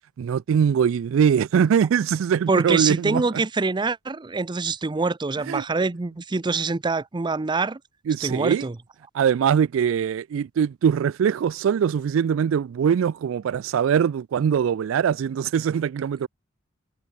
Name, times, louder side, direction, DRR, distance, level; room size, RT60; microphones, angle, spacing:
voice 1, 0.2-3.2 5.5-5.6 8.1-8.6 9.1-16.3, right 7 dB, 75° right, 0.3 m, -22 dB
voice 2, 2.5-7.8 8.2-8.8, right 3 dB, 25° right, 0.5 m, -25 dB
head